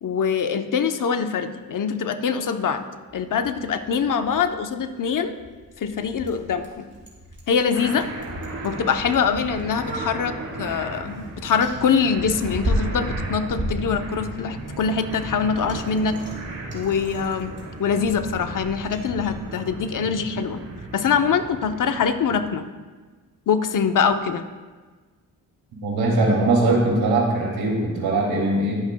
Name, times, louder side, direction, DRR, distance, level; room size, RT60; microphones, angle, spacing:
voice 1, 0.0-2.9 3.1-5.4 5.8-6.8 7.5-8.1 8.6-16.2 16.7-17.5 17.8-20.6 20.9-22.6 23.5-24.5, left 6 dB, 60° left, 8 dB, 0.8 m, -23 dB
Bicycle, 3.1-19.4, right 1 dB, 35° right, 3.2 m, -35 dB
sound 1, 7.7-22.6, right 2 dB, 60° right, 2.7 m, -36 dB
voice 2, 25.8-28.8, right 2 dB, 85° right, -1 dB, 2.7 m, -21 dB
20.5 x 8.2 x 2.3 m, 1.4 s
cardioid pair, 75°, 35 cm